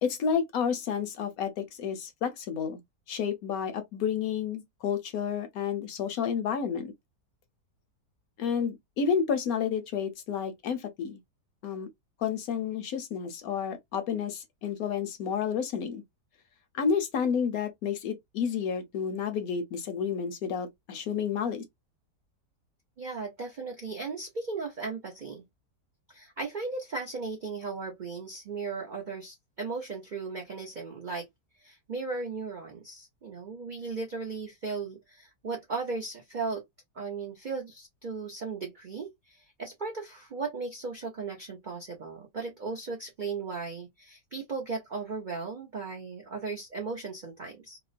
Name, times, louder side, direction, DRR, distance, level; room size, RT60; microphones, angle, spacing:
voice 1, 0.0-2.8 3.1-6.9 8.4-11.2 11.6-11.9 12.2-16.0 16.7-21.6, left 7 dB, 70° left, 1.0 m, -30 dB
voice 2, 23.0-25.4 26.1-31.3 31.6-36.6 36.9-47.8, right 4 dB, 80° right, 0.4 m, -36 dB
2.8 x 2.0 x 2.4 m
omnidirectional pair, 1.8 m